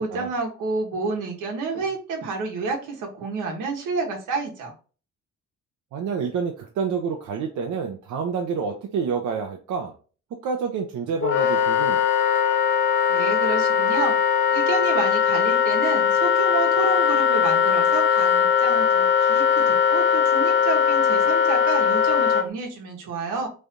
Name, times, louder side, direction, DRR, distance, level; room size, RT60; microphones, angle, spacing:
voice 1, 0.0-4.7 13.1-14.2 14.5-23.5, right 4 dB, 90° right, 1 dB, 1.2 m, -29 dB
voice 2, 5.9-9.9 10.4-12.0, right 6 dB, 75° right, 2 dB, 0.7 m, -28 dB
Wind instrument woodwind instrument, 11.2-22.4, left 7 dB, 40° left, 0.5 m, -20 dB
3.3 x 2.7 x 3.5 m, 0.37 s
cardioid pair, 90°, 30 cm